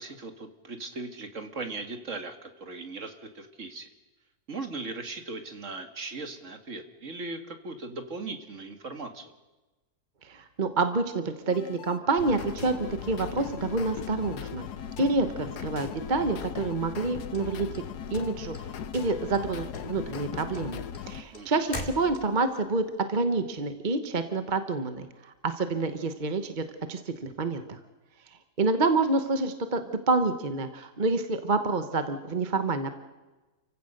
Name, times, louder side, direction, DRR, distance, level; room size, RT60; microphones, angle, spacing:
voice 1, 0.0-3.9 4.5-9.3 21.3-21.6, right 3 dB, 50° right, 7 dB, 2.0 m, -38 dB
voice 2, 10.2-14.7 15.0-17.8 18.1-18.5 18.9-27.8 28.6-29.8 30.1-32.9, right 3 dB, 35° right, 8 dB, 1.2 m, -28 dB
sound 1, 11.5-21.2, left 8 dB, 85° left, 1.5 m, -38 dB
sound 2, 17.3-18.6 18.9-19.5 19.7-22.5, left 2 dB, 30° left, 2.2 m, -40 dB
29.0 x 16.0 x 6.6 m, 1.2 s
omnidirectional pair, 1.6 m